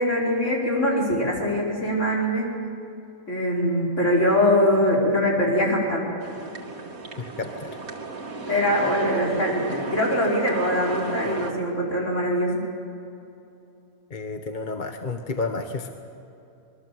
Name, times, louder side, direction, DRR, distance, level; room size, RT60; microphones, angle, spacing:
voice 1, 0.0-2.5 3.3-6.1 8.5-12.6, equal, 55° left, -2 dB, 5.4 m, -22 dB
sound 1, 6.2-11.5, right 3 dB, 80° right, 2.6 m, -35 dB
voice 2, 7.2-7.8 14.1-15.9, left 3 dB, 35° left, 5 dB, 1.2 m, -31 dB
26.0 x 22.0 x 7.7 m, 2.7 s
omnidirectional pair, 1.5 m